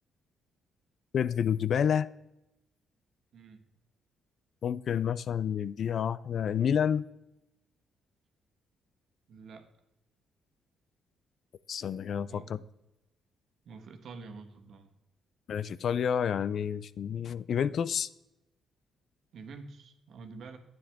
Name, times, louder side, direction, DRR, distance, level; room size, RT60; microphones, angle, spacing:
voice 1, 1.1-2.1 4.6-7.1 11.7-12.6 15.5-18.1, left 8 dB, 60° left, 0.4 m, -29 dB
voice 2, 3.3-3.6 9.3-9.7 12.3-12.5 13.6-14.9 19.3-20.6, right 4 dB, 65° right, 1.4 m, -47 dB
10.0 x 9.5 x 3.6 m
cardioid pair, 90°, 0 cm